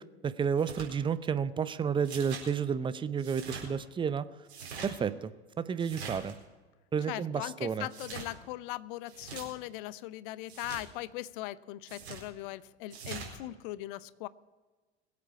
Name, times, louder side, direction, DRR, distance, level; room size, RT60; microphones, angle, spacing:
voice 1, 0.2-4.3 4.8-5.3 5.6-6.3 6.9-7.9, right 7 dB, 15° right, 14 dB, 0.6 m, -31 dB
sound 1, 0.6-0.9 2.0-2.5 3.2-3.7 4.4-4.9 5.8-6.3 7.9-8.3 9.1-9.5 10.5-10.8 11.9-12.2 12.9-13.3, right 6 dB, 70° right, 4.4 m, -43 dB
voice 2, 7.1-14.3, left 16 dB, 50° left, 18 dB, 0.7 m, -40 dB
22.5 x 8.5 x 4.8 m, 1.3 s
figure-of-eight pair, 85°, 34 cm